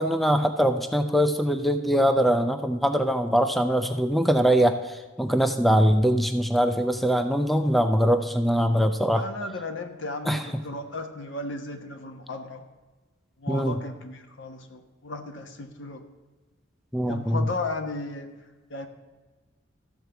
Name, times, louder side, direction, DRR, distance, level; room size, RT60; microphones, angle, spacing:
voice 1, 0.0-9.2 10.3-10.4 13.5-13.8 16.9-17.5, equal, ahead, 8 dB, 0.4 m, -22 dB
voice 2, 9.1-12.7 13.4-16.1 17.1-18.3 18.7-18.9, left 2 dB, 65° left, 6 dB, 1.1 m, -35 dB
13.5 x 4.6 x 6.8 m, 1.2 s
head